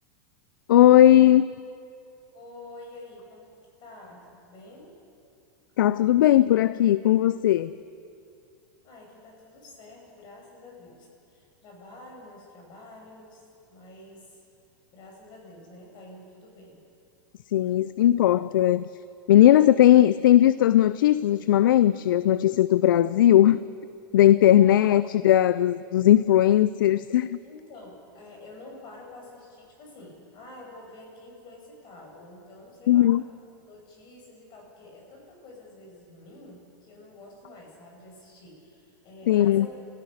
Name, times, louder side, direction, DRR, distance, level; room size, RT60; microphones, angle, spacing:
voice 1, 0.7-1.5 5.8-7.7 17.5-18.9 19.3-23.6 24.1-27.4 32.9-33.2 39.3-39.7, left 12 dB, 80° left, 16 dB, 0.5 m, -18 dB
voice 2, 2.3-5.0 8.8-13.4 13.7-14.4 14.9-16.8 24.6-24.9 27.4-33.1 33.6-39.9, left 2 dB, 45° left, 0 dB, 6.7 m, -48 dB
29.0 x 16.0 x 6.6 m, 2.6 s
hypercardioid pair, 115°, 11 cm